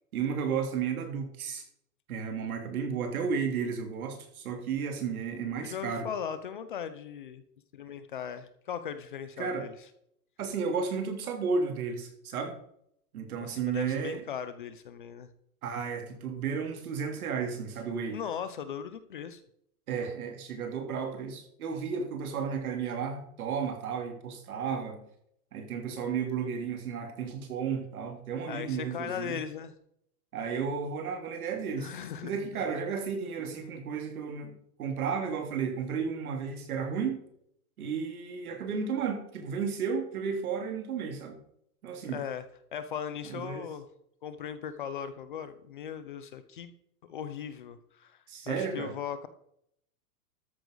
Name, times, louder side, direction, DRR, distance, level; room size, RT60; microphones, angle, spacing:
voice 1, 0.1-1.6 2.1-6.1 9.4-9.7 10.4-12.6 13.1-14.2 15.6-18.2 19.9-25.1 25.5-29.4 30.3-31.9 32.2-37.2 37.8-41.4 41.8-42.2 43.3-43.6 48.3-48.9, right 6 dB, 65° right, 4 dB, 3.1 m, -33 dB
voice 2, 5.6-7.4 7.7-9.9 13.4-15.3 18.1-19.4 28.5-29.7 31.8-32.5 42.1-42.5 42.7-43.9 44.2-46.7 47.1-49.3, left 8 dB, 35° left, 12 dB, 0.6 m, -38 dB
13.5 x 9.7 x 3.9 m, 0.70 s
supercardioid pair, 175°, 47 cm